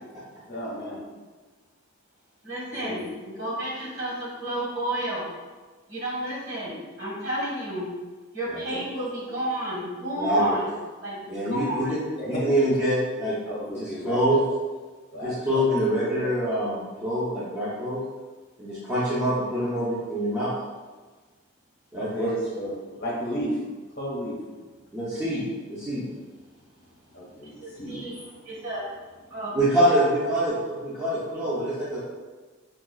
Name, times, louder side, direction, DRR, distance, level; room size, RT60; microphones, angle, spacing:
voice 1, 0.5-1.0 2.7-3.1 12.2-12.4 13.5-14.4 15.1-15.7 21.9-23.5 24.0-24.4 27.1-28.3, equal, 50° left, -4 dB, 0.8 m, -34 dB
voice 2, 2.4-5.3 5.9-7.9 8.3-10.7 11.0-11.2 11.5-11.9 27.6-28.2 28.4-28.9 29.3-29.5 29.9-30.0, right 1 dB, 60° right, -7 dB, 1.4 m, -31 dB
voice 3, 8.5-8.8 10.2-10.6 11.3-12.0 12.2-13.4 13.8-14.4 15.2-18.0 18.6-20.5 21.9-22.3 24.9-25.4 25.7-26.0 29.5-30.5 30.8-32.0, equal, 15° right, -11 dB, 0.6 m, -25 dB
4.8 x 2.3 x 2.3 m, 1.3 s
head